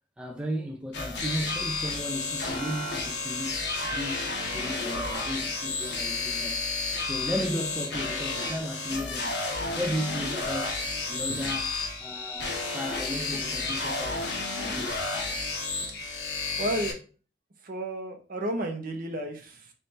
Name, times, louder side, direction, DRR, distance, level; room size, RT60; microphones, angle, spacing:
voice 1, 0.2-3.6 3.9-6.6 7.0-9.4 9.8-10.8 11.1-11.7 12.0-14.3 14.6-15.1, equal, 5° right, 0.5 m, -34 dB
sound 1, 0.9-16.9, left 3 dB, 70° left, 1.0 m, -31 dB
voice 2, 16.6-17.0 17.6-19.7, right 1 dB, 55° right, 0.9 m, -32 dB
3.3 x 3.3 x 4.2 m
head